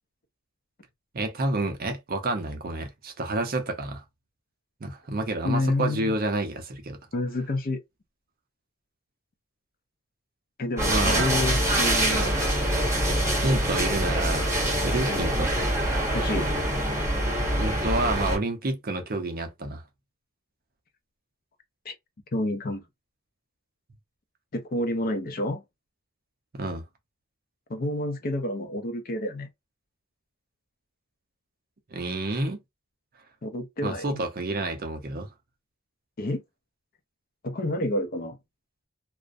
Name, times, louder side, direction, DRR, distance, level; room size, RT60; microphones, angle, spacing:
voice 1, 1.1-4.0 4.8-7.0 10.9-11.3 13.3-14.5 14.8-15.5 17.6-19.8 26.5-26.8 31.9-32.6 33.8-35.3, right 2 dB, 40° right, 0.5 m, -29 dB
voice 2, 5.4-6.1 7.1-7.8 10.6-12.7 15.1-15.3 16.1-16.5 21.9-22.0 22.3-22.8 24.5-25.6 27.7-29.5 33.4-34.2 36.2-36.4 37.4-38.4, left 1 dB, 40° left, 0.5 m, -29 dB
sound 1, 10.8-18.4, right 1 dB, 15° right, 0.9 m, -25 dB
2.4 x 2.1 x 2.5 m
head